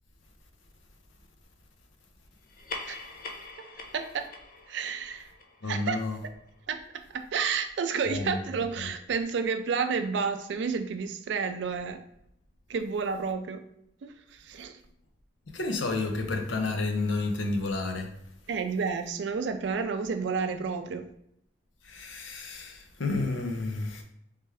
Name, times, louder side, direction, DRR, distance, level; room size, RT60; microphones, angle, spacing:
sound 1, 2.4-7.3, left 3 dB, 45° left, 0.5 m, -44 dB
voice 1, 3.9-4.3 4.7-5.3 5.6-6.0 6.7-6.8 7.3-12.0 12.7-13.6 14.0-14.7 18.5-21.1, right 5 dB, 75° right, 0.4 m, -30 dB
voice 2, 5.6-6.2 8.1-8.4 8.8-8.9 15.5-18.1 21.9-24.0, left 3 dB, 90° left, 0.6 m, -30 dB
3.3 x 3.2 x 3.4 m
head